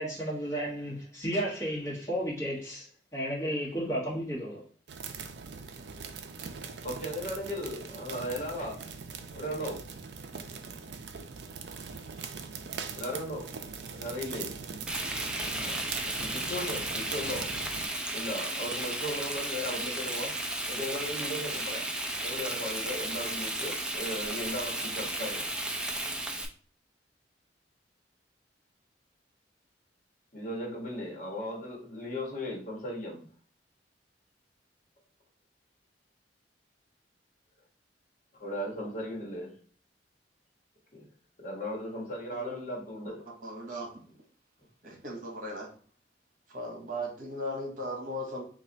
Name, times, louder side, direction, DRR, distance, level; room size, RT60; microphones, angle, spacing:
voice 1, 0.0-4.6, equal, 15° left, 1.4 m, -33 dB
sound 1, 4.9-17.9, right 5 dB, 65° right, 0.4 m, -41 dB
voice 2, 6.8-8.8 9.3-9.8 12.9-13.5 13.9-14.5 15.5-15.8 16.2-17.5 18.1-20.3 20.7-21.8 22.2-25.5 30.3-33.2 38.4-39.5 40.9-41.0 41.4-43.2, left 1 dB, 45° left, 1.3 m, -36 dB
Frying (food), 14.9-26.5, right 1 dB, 5° right, 0.3 m, -34 dB
voice 3, 43.4-43.9 44.8-45.7 46.5-48.4, equal, 50° right, 1.1 m, -37 dB
3.2 x 2.5 x 3.9 m
head